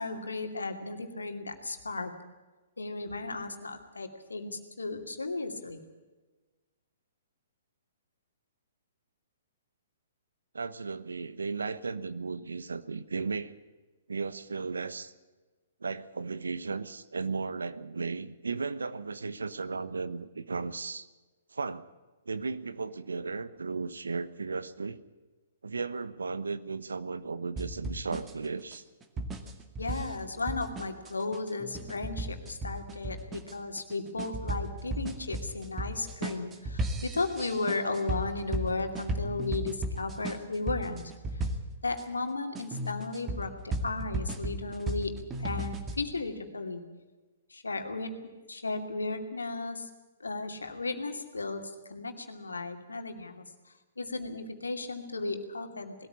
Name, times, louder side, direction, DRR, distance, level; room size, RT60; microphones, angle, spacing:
voice 1, 0.0-2.1 2.8-5.8 29.8-41.1 41.8-45.1 45.4-46.8 47.5-48.1 48.5-49.9 50.2-53.5 54.0-55.9, left 3 dB, 85° left, 6 dB, 2.6 m, -35 dB
voice 2, 10.5-13.5 14.1-15.1 15.8-21.1 21.5-21.9 22.3-25.0 25.6-28.8, right 4 dB, 80° right, 15 dB, 1.1 m, -35 dB
sound 1, 27.6-42.0 42.5-46.0, right 1 dB, 20° right, 2.2 m, -36 dB
20.0 x 14.0 x 9.8 m, 1.2 s
figure-of-eight pair, 120°, 0 cm